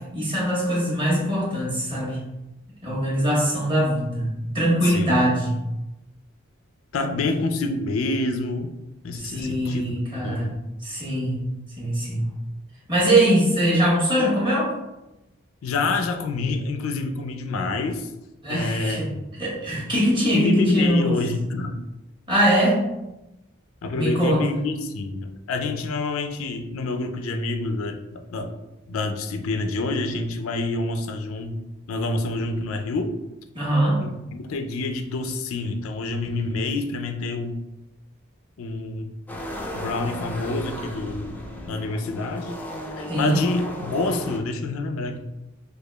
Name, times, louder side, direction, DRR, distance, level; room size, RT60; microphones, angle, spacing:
voice 1, 0.1-2.2 2.8-5.6 7.2-7.3 9.2-10.5 10.8-11.4 11.8-12.3 12.9-14.7 18.4-19.1 19.4-21.2 22.3-22.8 23.9-24.4 33.5-34.0 43.1-43.4, right 1 dB, 25° right, -5 dB, 1.3 m, -22 dB
voice 2, 4.8-5.1 6.9-8.7 9.0-10.6 15.6-18.1 18.5-19.2 20.3-21.8 23.8-28.5 28.9-31.6 31.9-33.2 34.0-37.6 38.6-39.1 39.7-41.4 41.7-42.6 43.0-45.3, left 3 dB, 80° left, 6 dB, 0.4 m, -27 dB
sound 1, 39.3-44.4, left 1 dB, 10° left, 0.4 m, -35 dB
4.7 x 2.3 x 2.2 m, 0.95 s
head